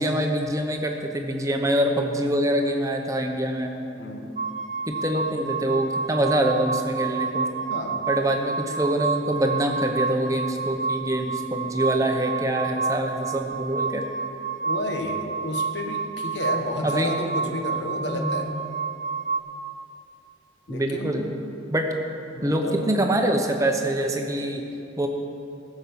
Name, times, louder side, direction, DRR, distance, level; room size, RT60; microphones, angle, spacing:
voice 1, 0.0-3.8 4.9-7.5 8.1-14.0 16.8-17.1 18.0-18.4 20.7-21.3 21.7-21.9 22.4-24.6 25.0-25.1, right 1 dB, 15° right, 3 dB, 0.9 m, -25 dB
voice 2, 4.0-4.3 7.7-8.0 14.6-18.5 20.7-21.3 22.3-22.9, left 1 dB, 65° left, 3 dB, 1.3 m, -31 dB
sound 1, 4.4-19.4, right 5 dB, 35° right, 0.4 m, -30 dB
15.5 x 6.1 x 7.0 m, 2.7 s
head